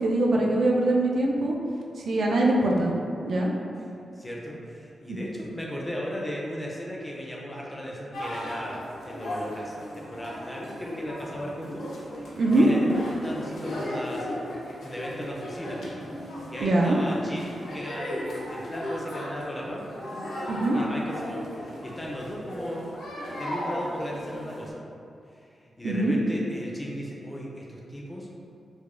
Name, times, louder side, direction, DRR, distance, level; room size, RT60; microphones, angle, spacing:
voice 1, 0.0-1.6 2.0-2.9 3.2-3.5 5.1-5.2 12.4-12.7 16.6-17.0 20.5-20.8 25.8-26.1, right 2 dB, 60° right, -2 dB, 0.4 m, -22 dB
voice 2, 4.2-11.8 12.2-12.3 12.5-14.3 14.8-15.8 16.5-19.8 20.7-22.9 23.4-24.8 25.3-28.3, equal, 15° left, -3 dB, 0.4 m, -36 dB
sound 1, 8.1-24.7, left 1 dB, 85° left, 0.6 m, -36 dB
4.7 x 2.2 x 2.4 m, 2.6 s
wide cardioid pair, 155°, 0 cm